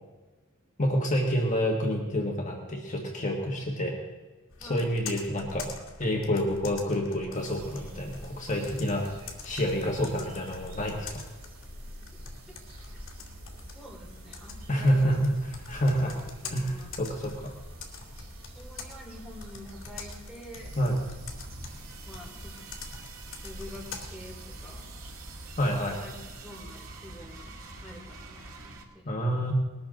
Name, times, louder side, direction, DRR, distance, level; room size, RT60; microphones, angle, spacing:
voice 1, 0.8-4.0 4.6-5.7 6.0-11.2 14.7-16.2 16.5-17.5 20.8-21.0 25.6-26.0 29.0-29.5, equal, 35° left, 0 dB, 1.5 m, -28 dB
Computer keyboard, 4.5-24.0, left 4 dB, 65° left, 2.4 m, -45 dB
voice 2, 4.6-4.9 12.9-13.0 13.7-15.2 16.0-16.9 18.5-20.7 22.0-22.6 23.4-24.8 25.6-26.1 26.4-29.2, left 1 dB, ahead, -2 dB, 2.8 m, -47 dB
sound 1, 7.3-26.3, right 1 dB, 70° right, 2.6 m, -47 dB
sound 2, 20.5-28.8, right 2 dB, 90° right, 2.0 m, -46 dB
20.5 x 13.0 x 3.8 m, 1.3 s
head